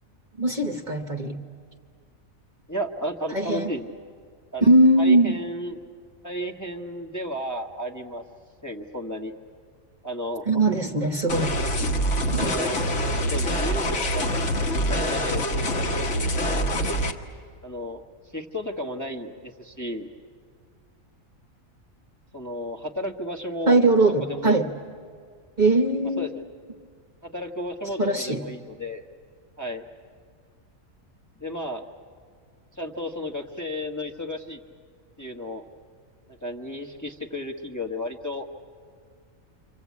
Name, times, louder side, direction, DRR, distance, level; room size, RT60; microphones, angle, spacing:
voice 1, 0.4-1.4 3.3-3.7 4.6-5.3 10.5-11.5 12.3-12.5 23.7-24.7 25.6-26.3 28.0-28.4, right 2 dB, 35° right, 4 dB, 1.1 m, -20 dB
voice 2, 2.7-3.9 4.5-4.6 5.0-5.8 6.2-8.2 8.6-9.3 10.0-10.8 12.3-12.8 13.1-14.3 14.6-15.5 17.6-18.0 18.3-20.1 22.3-23.8 24.2-24.6 26.2-26.5 27.2-29.0 29.6-29.8 31.4-31.9 32.8-34.6 35.2-35.6 36.4-38.5, equal, 15° left, 1 dB, 1.1 m, -33 dB
sound 1, 11.3-17.1, equal, 60° left, 1.7 m, -25 dB
28.5 x 25.5 x 8.3 m, 2.1 s
omnidirectional pair, 1.4 m